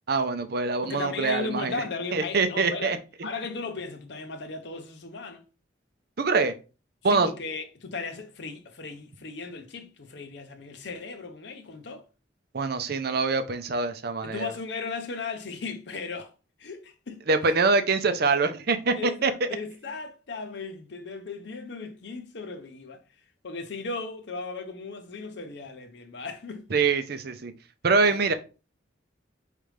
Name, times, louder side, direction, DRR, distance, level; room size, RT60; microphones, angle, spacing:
voice 1, 0.1-1.8 2.1-3.3 6.2-6.5 7.0-7.3 12.5-14.5 17.3-19.5 26.7-27.5 27.8-28.3, right 4 dB, 55° right, 0.6 m, -24 dB
voice 2, 0.8-5.4 7.1-12.0 14.2-16.3 16.6-17.6 18.9-23.0 23.4-26.7 28.1-28.3, left 4 dB, 65° left, 0.7 m, -36 dB
5.1 x 3.2 x 3.2 m
head